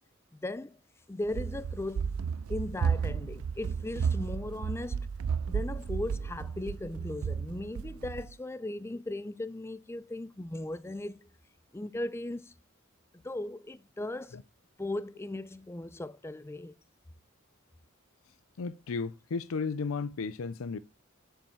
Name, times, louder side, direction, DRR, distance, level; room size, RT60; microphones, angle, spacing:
voice 1, 0.3-0.8 1.1-2.2 2.5-5.1 5.5-11.3 11.7-12.5 13.2-14.4 14.8-16.7, left 2 dB, 10° left, 0.4 m, -37 dB
Run, 1.3-8.3, right 6 dB, 85° right, 0.4 m, -33 dB
voice 2, 18.6-20.8, left 4 dB, 75° left, 0.5 m, -34 dB
7.5 x 5.4 x 7.0 m
head